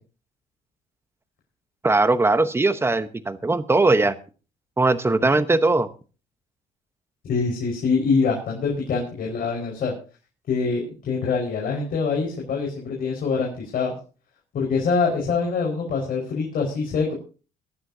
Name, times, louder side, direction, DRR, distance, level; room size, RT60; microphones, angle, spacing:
voice 1, 1.8-4.1 4.8-5.9, right 3 dB, 15° right, 12 dB, 1.1 m, -20 dB
voice 2, 7.3-9.9 10.5-13.9 14.5-17.1, left 4 dB, 55° left, -2 dB, 5.1 m, -24 dB
22.0 x 11.0 x 2.8 m, 0.35 s
cardioid pair, 110°, 17 cm